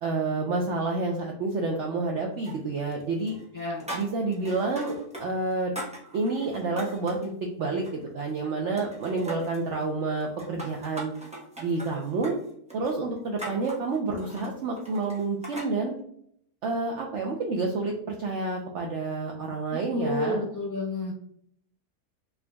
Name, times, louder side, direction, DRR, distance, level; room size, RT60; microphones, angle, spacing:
voice 1, 0.0-3.4 3.9-5.7 6.1-7.3 7.6-11.1 11.6-12.3 12.7-16.0 16.6-20.5, right 3 dB, 65° right, 1 dB, 0.8 m, -29 dB
sound 1, 2.4-3.0 3.3-5.3 5.5-7.3 7.7-8.5 8.8-9.7 10.2-15.7, right 1 dB, 5° right, 0.7 m, -41 dB
voice 2, 3.5-3.8 19.9-21.1, left 2 dB, 15° left, -8 dB, 1.4 m, -30 dB
3.8 x 3.5 x 2.2 m, 0.68 s
omnidirectional pair, 1.6 m